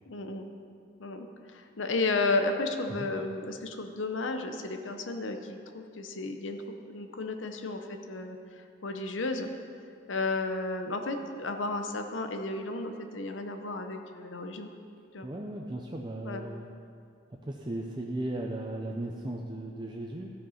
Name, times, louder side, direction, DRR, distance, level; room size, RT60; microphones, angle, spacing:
voice 1, 0.1-0.5 1.0-9.5 10.1-14.7 15.1-15.3 16.2-16.4, left 3 dB, 85° left, 6 dB, 0.8 m, -33 dB
voice 2, 15.2-16.7 17.4-20.3, right 1 dB, 25° right, 1 dB, 0.5 m, -36 dB
14.0 x 5.3 x 5.7 m, 2.4 s
head